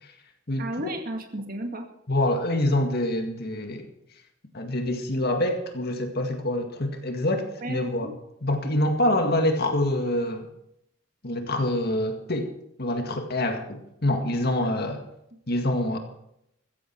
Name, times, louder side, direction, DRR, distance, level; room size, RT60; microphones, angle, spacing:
voice 1, 0.6-1.9 7.6-8.1 14.4-14.7, right 1 dB, 50° right, 5 dB, 2.1 m, -34 dB
voice 2, 2.1-3.9 4.5-8.1 8.4-10.5 11.2-12.5 12.8-15.0 15.5-16.0, left 1 dB, 55° left, 5 dB, 2.0 m, -26 dB
15.5 x 14.5 x 4.6 m, 0.76 s
head